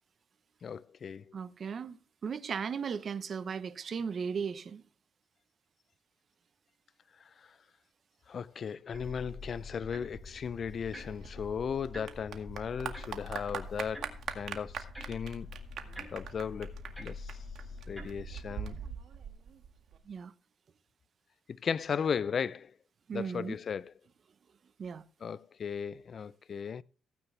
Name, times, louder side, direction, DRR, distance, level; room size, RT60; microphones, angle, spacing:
voice 1, 0.6-1.2 8.3-14.1 14.3-15.5 16.1-16.7 17.0-17.3 17.9-18.8 21.6-22.7 23.1-23.9 25.2-26.8, left 7 dB, 50° left, 0.5 m, -36 dB
voice 2, 1.3-4.8 20.1-20.3 23.1-23.6 24.8-25.0, right 6 dB, 50° right, 1.0 m, -36 dB
sound 1, 8.9-18.8, left 3 dB, 5° right, 5.8 m, -46 dB
Clapping / Applause, 11.0-20.0, right 8 dB, 65° right, 1.9 m, -42 dB
16.5 x 9.0 x 3.4 m
cardioid pair, 90°, 0 cm